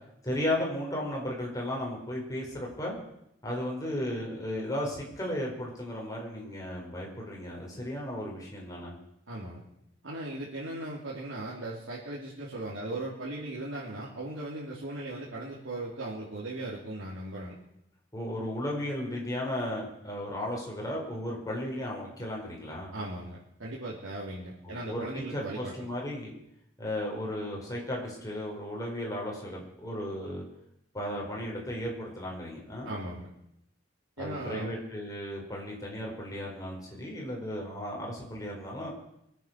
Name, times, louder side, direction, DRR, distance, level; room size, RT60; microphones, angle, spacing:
voice 1, 0.2-2.9 3.4-8.9 18.1-22.9 24.6-25.0 25.3-26.3 26.8-30.4 30.9-32.9 34.2-38.9, left 1 dB, 20° left, -2 dB, 4.8 m, -35 dB
voice 2, 9.3-9.6 10.0-17.6 22.9-25.9 32.8-33.3 34.2-34.7, right 2 dB, 85° right, -6 dB, 3.1 m, -38 dB
22.5 x 9.0 x 6.4 m, 0.80 s
head